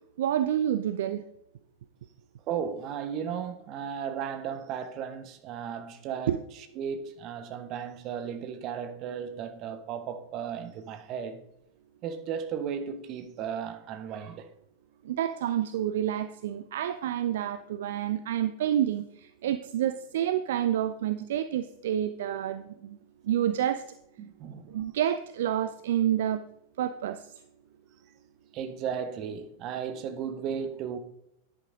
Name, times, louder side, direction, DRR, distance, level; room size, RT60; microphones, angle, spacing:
voice 1, 0.2-1.2 6.3-6.4 15.0-23.0 23.2-23.8 24.7-26.4 26.8-27.3, right 11 dB, 55° right, 0.4 m, -28 dB
voice 2, 2.5-6.4 6.8-11.4 12.0-14.5 24.2-24.7 28.5-31.0, right 7 dB, 40° right, 1.2 m, -35 dB
10.5 x 8.9 x 3.8 m
figure-of-eight pair, 90°, 0 cm